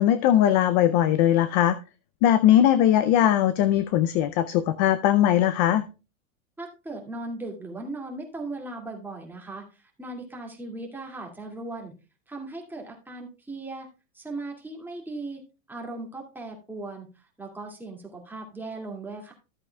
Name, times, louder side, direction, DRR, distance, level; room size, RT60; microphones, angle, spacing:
voice 1, 0.0-1.8 2.2-5.8, left 11 dB, 35° left, 14 dB, 0.4 m, -20 dB
voice 2, 6.6-11.9 12.3-13.9 14.1-19.3, right 2 dB, 5° right, -1 dB, 2.1 m, -38 dB
13.5 x 8.1 x 2.2 m, 0.30 s
supercardioid pair, 145°, 40 cm